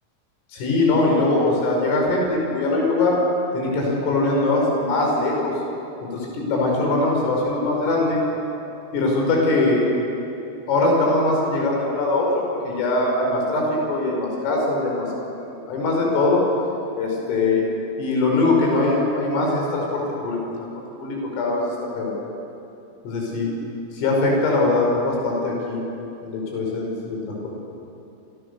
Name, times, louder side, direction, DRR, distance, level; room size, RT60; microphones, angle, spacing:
voice 1, 0.5-3.2 3.5-5.5 6.0-8.2 8.9-9.9 10.7-15.1 15.4-16.4 17.0-17.6 18.0-20.4 21.0-21.7 22.0-22.1 23.0-23.5 23.9-25.8 26.2-27.5, left 2 dB, 85° left, -1 dB, 7.9 m, -21 dB
28.5 x 28.0 x 6.9 m, 2.9 s
omnidirectional pair, 5.7 m